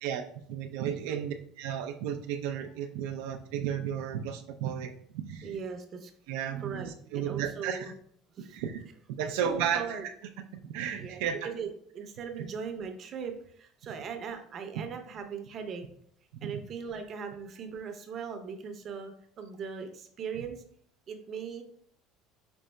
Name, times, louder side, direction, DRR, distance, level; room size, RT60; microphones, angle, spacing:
voice 1, 0.0-5.5 6.3-7.9 8.5-8.8 9.2-10.1 10.6-11.5 16.4-16.5, right 8 dB, 85° right, 4 dB, 0.4 m, -34 dB
voice 2, 5.4-6.1 6.6-6.9 7.1-7.9 8.3-8.6 9.2-10.1 11.0-11.7 11.9-15.9 16.4-20.6 21.1-21.6, right 6 dB, 40° right, 6 dB, 0.6 m, -39 dB
5.2 x 3.7 x 2.2 m, 0.62 s
cardioid pair, 130°, 0 cm